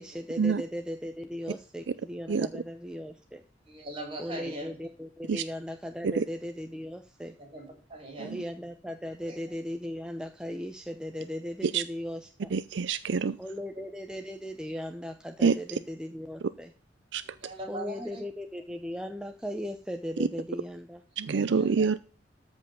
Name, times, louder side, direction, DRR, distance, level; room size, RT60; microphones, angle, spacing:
voice 1, 0.0-3.4 4.2-7.3 8.2-12.5 13.4-16.7 17.7-21.0, equal, 5° right, 5 dB, 0.7 m, -37 dB
voice 2, 3.7-4.8 7.4-8.4 9.3-9.4 17.3-18.2 21.3-21.9, right 1 dB, 30° right, 3 dB, 4.5 m, -40 dB
voice 3, 12.5-13.4 15.4-15.6 17.1-17.2 21.2-22.0, right 5 dB, 70° right, 14 dB, 0.5 m, -26 dB
13.5 x 5.4 x 5.3 m, 0.38 s
head